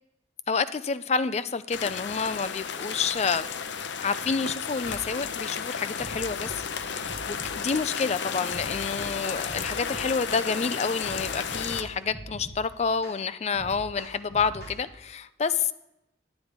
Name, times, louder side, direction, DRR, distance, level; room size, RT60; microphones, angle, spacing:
voice 1, 0.5-3.5 4.0-15.7, left 5 dB, 35° left, 0.4 m, -29 dB
sound 1, 1.7-11.8, left 6 dB, 80° left, 0.6 m, -33 dB
sound 2, 4.8-5.0 5.4-5.6 6.0-7.6 8.0-8.2 8.5-10.1 10.5-10.7 11.0-12.6 13.0-13.2 13.5-14.8, right 1 dB, 55° left, 3.2 m, -43 dB
10.0 x 9.1 x 5.2 m
head